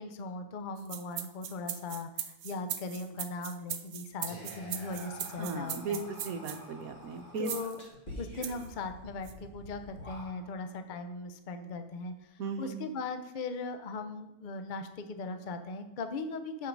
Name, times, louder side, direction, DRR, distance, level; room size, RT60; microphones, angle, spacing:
voice 1, 0.0-6.0 7.4-7.8 8.2-16.7, left 3 dB, 75° left, 8 dB, 0.4 m, -39 dB
sound 1, 0.8-6.6 7.4-7.8 8.4-8.7 9.2-9.3, right 10 dB, 85° right, 1.3 m, -39 dB
Whispering, 4.3-10.7, left 1 dB, 30° left, 2.2 m, -48 dB
voice 2, 5.4-6.0 6.2-7.5 12.4-12.7, right 5 dB, 65° right, 7 dB, 1.2 m, -36 dB
9.0 x 5.6 x 5.2 m, 0.97 s
omnidirectional pair, 1.8 m